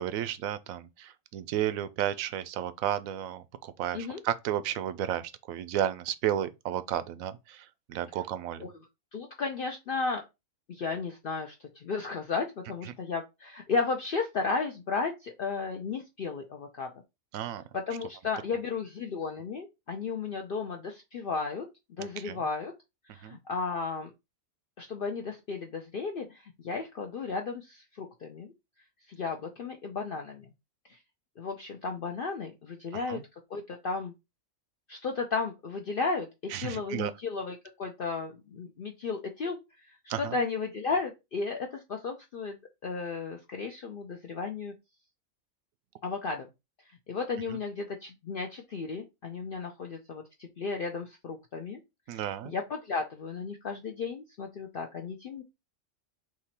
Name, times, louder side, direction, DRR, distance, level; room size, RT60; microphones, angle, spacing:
voice 1, 0.0-8.7 12.9-13.0 17.3-17.6 22.0-22.5 23.2-23.4 32.9-33.2 36.5-37.1 40.1-40.4 47.5-47.6 52.1-52.5, right 11 dB, 85° right, 1.0 m, -33 dB
voice 2, 9.1-10.2 10.7-16.9 17.7-21.7 22.0-22.7 23.1-24.1 24.8-28.5 29.1-30.5 30.9-31.0 31.4-33.2 33.5-34.1 34.9-36.3 36.6-39.6 39.9-42.6 42.8-44.7 46.0-46.5 47.1-51.8 52.1-55.4, left 4 dB, 55° left, 0.6 m, -34 dB
3.8 x 3.0 x 4.2 m
omnidirectional pair, 1.4 m